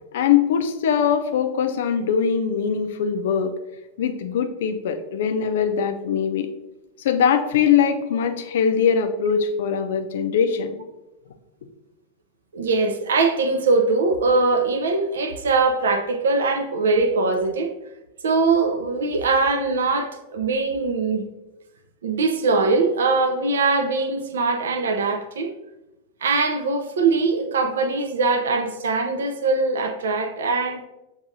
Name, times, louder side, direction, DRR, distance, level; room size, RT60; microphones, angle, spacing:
voice 1, 0.1-3.5 4.0-6.5 7.0-10.8, left 7 dB, 60° left, 0.4 m, -21 dB
voice 2, 12.5-17.7 18.2-21.3 22.0-25.5 26.2-30.8, right 3 dB, 65° right, 0.5 m, -22 dB
6.7 x 2.7 x 2.6 m
figure-of-eight pair, 90°, 0 cm